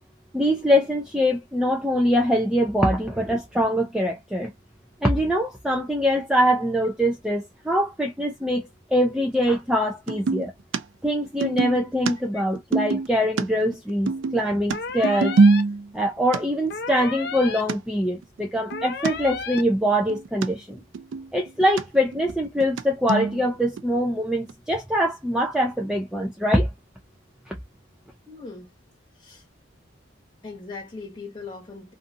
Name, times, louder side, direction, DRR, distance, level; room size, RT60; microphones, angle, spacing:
voice 1, 0.3-4.5 5.0-10.5 11.0-15.3 15.9-20.8 21.3-26.7 27.5-27.6, equal, 5° right, 0.3 m, -23 dB
sound 1, 10.1-10.5 10.7-10.8 11.1-13.4 13.7-16.0 16.3-16.4 16.9-17.0 17.4-17.5 17.7-17.8 18.1-19.1 19.6-19.7 19.9-20.5 20.8-21.8 22.1-22.8 23.1-23.4 23.8-23.9 24.5-24.6, right 4 dB, 75° right, 0.4 m, -23 dB
sound 2, 14.7-15.6 16.7-17.6 18.7-19.6, left 5 dB, 55° left, 0.5 m, -33 dB
voice 2, 28.3-28.7 29.2-29.5 30.4-31.9, left 4 dB, 25° left, 1.1 m, -39 dB
2.6 x 2.3 x 2.6 m
head